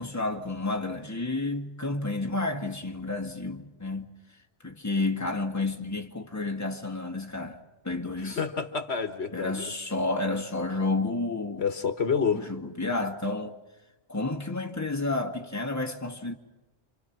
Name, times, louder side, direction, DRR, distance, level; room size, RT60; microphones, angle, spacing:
voice 1, 0.0-4.1 4.6-7.6 7.8-8.4 9.3-11.6 12.3-13.6 14.1-16.3, left 2 dB, 15° left, 1.7 m, -30 dB
voice 2, 8.2-9.7 11.6-12.4, left 6 dB, 70° left, 1.6 m, -28 dB
28.5 x 26.0 x 6.0 m
omnidirectional pair, 1.1 m